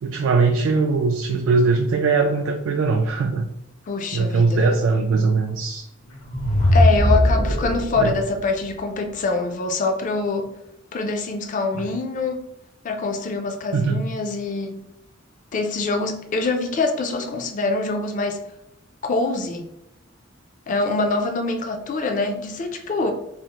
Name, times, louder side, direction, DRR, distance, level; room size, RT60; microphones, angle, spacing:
voice 1, 0.0-3.5 4.1-5.8 8.0-8.1 11.7-11.9 13.7-14.1, right 4 dB, 70° right, 0.3 m, -20 dB
voice 2, 3.9-4.6 6.7-10.5 10.9-12.4 12.8-14.8 15.5-18.4 19.0-19.7 20.7-23.1, left 3 dB, 40° left, 0.4 m, -24 dB
sound 1, 6.1-8.1, equal, 80° left, 0.9 m, -19 dB
3.4 x 2.0 x 2.8 m
head